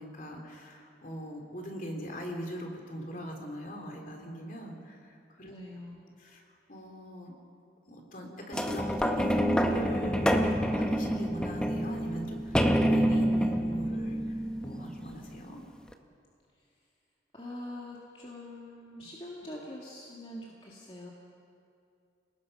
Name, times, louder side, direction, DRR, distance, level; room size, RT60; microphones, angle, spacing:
voice 1, 0.0-5.5 6.2-6.4 6.7-7.3 7.9-15.6, equal, 45° left, 1 dB, 3.1 m, -41 dB
voice 2, 5.5-6.0 17.3-21.1, left 1 dB, 30° left, -4 dB, 1.9 m, -44 dB
sound 1, 8.5-15.3 15.9-16.0, equal, 5° left, 0.9 m, -27 dB
29.5 x 19.0 x 5.4 m, 2.5 s
head